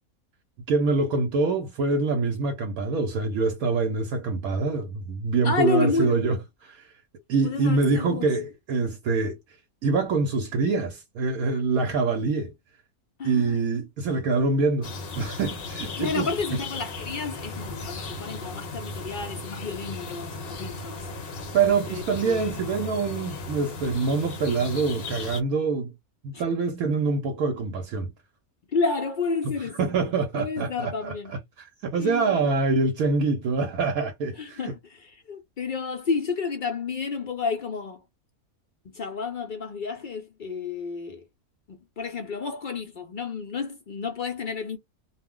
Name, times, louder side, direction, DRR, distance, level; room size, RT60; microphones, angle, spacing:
voice 1, 0.7-6.4 6.6-6.9 7.3-9.4 9.8-12.5 13.2-16.3 21.5-25.9 26.2-28.1 29.8-34.6, right 4 dB, 80° right, 1.0 m, -25 dB
voice 2, 5.4-6.2 7.4-8.3 13.2-13.7 16.0-21.1 21.9-22.4 26.3-26.4 28.7-29.9 30.3-31.3 32.0-32.6 34.3-38.0 38.8-41.2 41.7-44.8, left 4 dB, 75° left, 0.4 m, -31 dB
sound 1, 14.8-25.4, left 3 dB, 50° left, 0.8 m, -36 dB
2.4 x 2.0 x 3.5 m
omnidirectional pair, 1.5 m